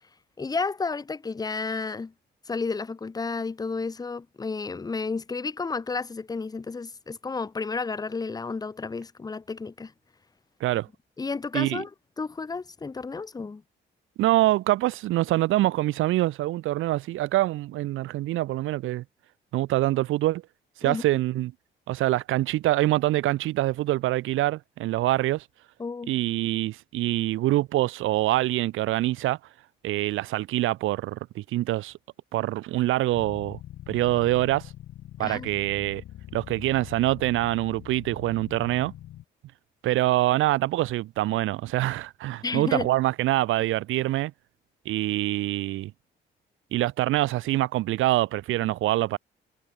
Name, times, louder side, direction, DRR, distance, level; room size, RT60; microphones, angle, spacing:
voice 1, 0.4-2.1 2.5-9.9 11.2-11.9 12.2-13.6 20.8-21.0 25.8-26.1 35.2-35.5 42.4-42.9, left 4 dB, 20° left, 0.7 m, -32 dB
voice 2, 14.2-19.0 19.5-20.4 20.8-21.5 21.9-25.4 26.1-29.4 29.8-31.9 32.3-33.6 33.9-34.7 35.2-36.0 36.3-38.9 39.8-44.3 44.8-45.9 46.7-49.2, right 16 dB, 85° right, 1.3 m, -25 dB
sound 1, 33.1-39.2, left 13 dB, 80° left, 2.7 m, -43 dB
cardioid pair, 90°, 20 cm